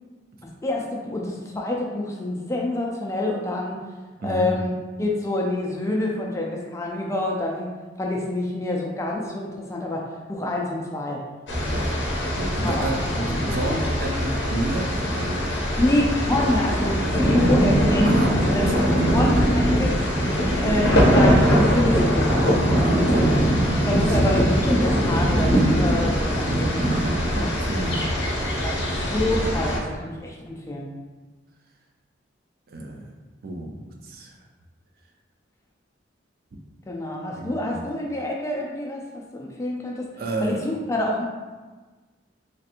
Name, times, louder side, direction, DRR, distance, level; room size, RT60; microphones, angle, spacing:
voice 1, 0.6-3.8 4.2-4.7 5.0-10.0 10.3-11.2 12.6-13.4 13.7-13.9 15.8-18.8 19.1-19.9 20.6-22.4 22.9-23.4 23.7-26.8 27.4-27.5 27.8-27.9 28.6-30.9 36.9-40.1 40.4-41.2, left 1 dB, 15° left, -1 dB, 0.3 m, -27 dB
voice 2, 4.2-4.5 11.6-12.0 12.4-15.5 18.0-18.3 18.7-19.5 22.7-23.5 23.8-24.2 26.8-28.1 32.7-33.1 33.4-34.4 37.3-37.8 40.2-40.6, right 1 dB, 50° right, 1 dB, 0.4 m, -31 dB
sound 1, 11.5-29.8, equal, 70° left, 0.6 m, -21 dB
3.2 x 2.8 x 2.5 m, 1.3 s
head